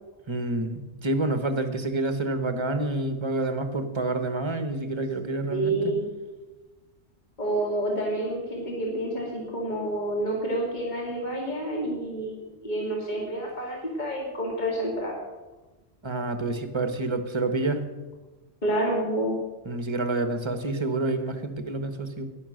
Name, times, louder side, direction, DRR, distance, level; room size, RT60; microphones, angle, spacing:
voice 1, 0.3-5.9 16.0-17.8 19.6-22.2, right 2 dB, 25° right, 9 dB, 1.1 m, -28 dB
voice 2, 5.5-6.1 7.4-15.2 18.6-19.4, right 1 dB, 40° left, -2 dB, 2.5 m, -28 dB
10.5 x 10.0 x 6.4 m, 1.2 s
omnidirectional pair, 1.1 m